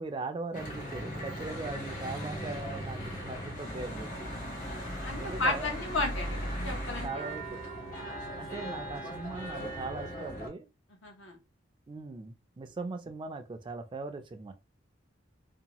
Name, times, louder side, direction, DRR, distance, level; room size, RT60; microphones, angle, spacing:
voice 1, 0.0-4.3 5.1-5.8 7.0-7.6 8.2-10.7 11.9-14.5, right 3 dB, 25° right, 0.3 m, -40 dB
Church bell / Traffic noise roadway noise, 0.5-10.5, equal, 45° left, 0.9 m, -38 dB
voice 2, 4.6-7.3 8.0-8.2 11.0-11.3, left 2 dB, 85° left, 0.9 m, -34 dB
2.7 x 2.2 x 2.9 m
head